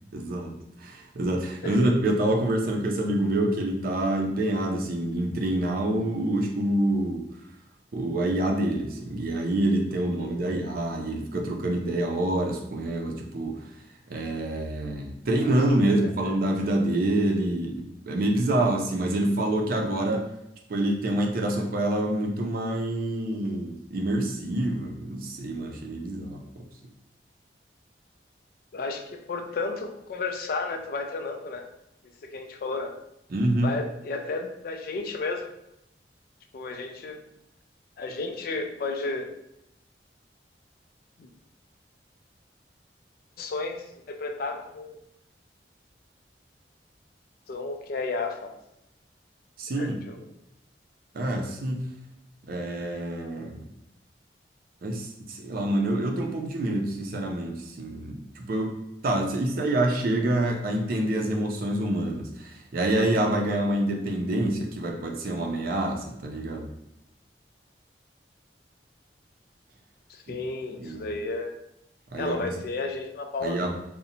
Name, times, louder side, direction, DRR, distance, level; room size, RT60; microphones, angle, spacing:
voice 1, 0.1-0.5 0.8-7.2 7.9-13.6 14.1-20.2 20.7-26.7 33.3-33.7 49.6-50.0 51.1-51.9 52.5-53.6 54.8-58.7 59.0-66.7 70.3-70.4 70.8-71.1 72.1-72.5 73.4-73.7, right 1 dB, 55° right, 1 dB, 0.4 m, -27 dB
voice 2, 10.2-10.5 15.4-15.5 15.8-15.9 28.7-31.6 32.3-32.9 33.6-35.5 36.5-37.2 38.0-39.3 41.2-41.3 43.4-45.0 47.5-48.5 49.8-50.2 70.1-71.5 72.1-73.7, left 3 dB, 55° left, 4 dB, 0.3 m, -33 dB
2.7 x 2.0 x 2.7 m, 0.83 s
head